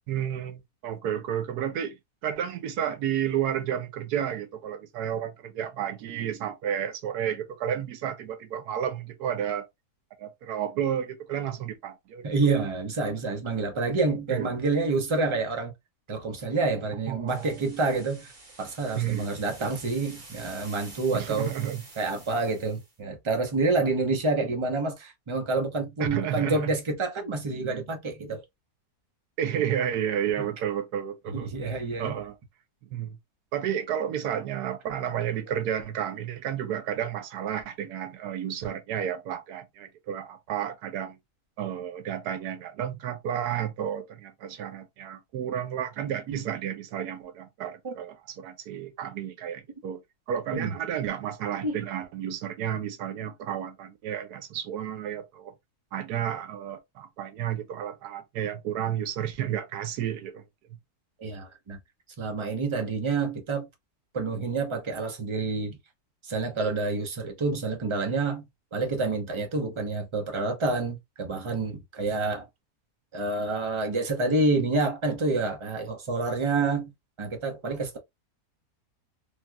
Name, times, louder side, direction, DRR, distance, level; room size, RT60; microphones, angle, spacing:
voice 1, 0.1-2.0 2.2-9.7 10.2-12.3 14.3-14.5 17.1-17.6 18.9-19.4 21.1-21.8 26.0-26.7 29.4-31.6 32.0-32.3 32.8-33.2 33.5-41.2 41.6-50.0 50.3-55.5 55.9-60.4, right 9 dB, 85° right, 1.2 m, -31 dB
voice 2, 12.2-15.7 16.1-18.3 18.6-21.5 22.0-28.4 30.4-30.5 31.3-32.1 47.8-47.9 50.5-50.7 51.6-51.8 61.2-61.8 62.2-63.7 64.1-65.8 66.2-68.4 68.7-72.5 73.1-76.9 77.2-78.0, right 3 dB, 35° right, 0.4 m, -28 dB
sound 1, 17.3-22.9, right 2 dB, 55° right, 1.8 m, -49 dB
3.3 x 2.8 x 2.2 m
omnidirectional pair, 1.7 m